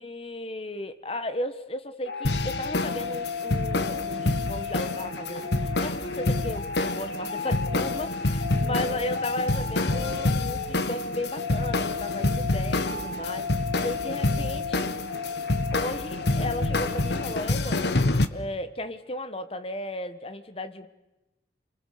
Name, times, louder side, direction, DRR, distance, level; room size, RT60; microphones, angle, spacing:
voice 1, 0.0-14.9 15.7-18.0 18.3-20.9, left 1 dB, 35° left, 9 dB, 1.4 m, -35 dB
sound 1, 2.1-17.4, left 4 dB, 90° left, 2.3 m, -34 dB
sound 2, 2.2-18.3, left 2 dB, 75° left, 1.2 m, -28 dB
29.0 x 23.5 x 6.8 m, 0.99 s
head